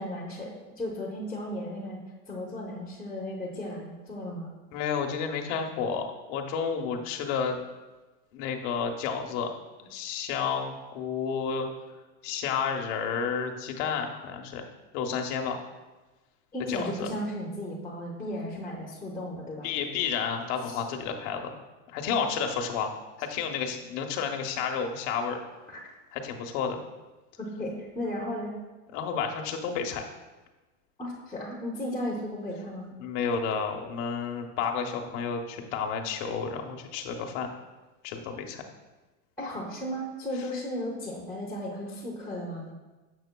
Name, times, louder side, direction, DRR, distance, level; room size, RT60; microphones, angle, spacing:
voice 1, 0.0-2.0 2.3-4.5 16.5-19.7 20.6-20.8 25.7-25.8 27.6-28.5 31.0-32.9 39.4-42.7, left 1 dB, 10° left, -4 dB, 0.7 m, -35 dB
voice 2, 4.7-7.6 8.3-9.5 9.8-11.7 12.2-14.6 14.9-15.6 16.7-17.1 19.6-21.6 21.9-22.9 23.2-25.4 26.1-26.8 28.9-30.0 33.0-37.5 38.0-38.6, left 6 dB, 60° left, 3 dB, 0.8 m, -31 dB
6.9 x 6.2 x 2.2 m, 1.2 s
supercardioid pair, 145°, 38 cm